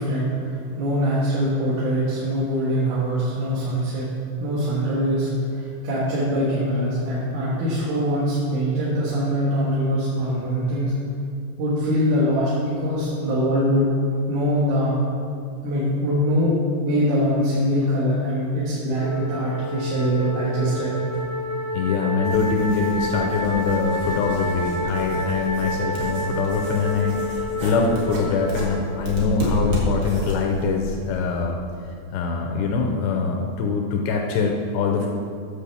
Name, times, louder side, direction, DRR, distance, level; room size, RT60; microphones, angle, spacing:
voice 1, 0.0-4.1 4.4-11.0 11.6-13.9 14.3-15.0 15.6-20.9, equal, 75° right, -8 dB, 3.9 m, -23 dB
Wind instrument woodwind instrument, 18.9-29.3, left 1 dB, 25° left, 0.3 m, -29 dB
voice 2, 21.7-31.6 32.1-35.1, left 4 dB, 80° left, 2 dB, 2.5 m, -23 dB
sound 1, 22.2-31.5, left 1 dB, 55° right, 2.5 m, -32 dB
10.0 x 5.4 x 6.9 m, 2.4 s
omnidirectional pair, 5.6 m